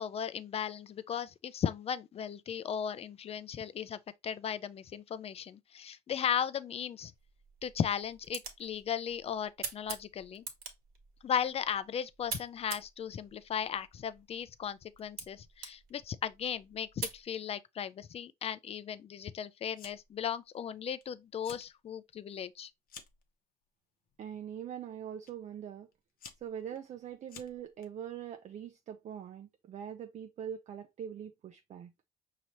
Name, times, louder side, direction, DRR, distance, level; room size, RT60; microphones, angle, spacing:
voice 1, 0.0-7.1 7.6-10.5 11.2-22.7, left 8 dB, 35° left, 0.4 m, -36 dB
sound 1, 7.1-17.2, right 5 dB, 60° right, 1.4 m, -46 dB
Fire, 19.7-20.2 20.5-21.0 21.3-21.7 22.1-23.3 24.1-24.4 25.3-25.4 25.9-27.9, left 7 dB, 60° left, 0.8 m, -52 dB
voice 2, 24.2-25.9 26.4-31.9, right 9 dB, 45° right, 0.5 m, -43 dB
5.3 x 2.8 x 3.0 m
cardioid pair, 110°, 17 cm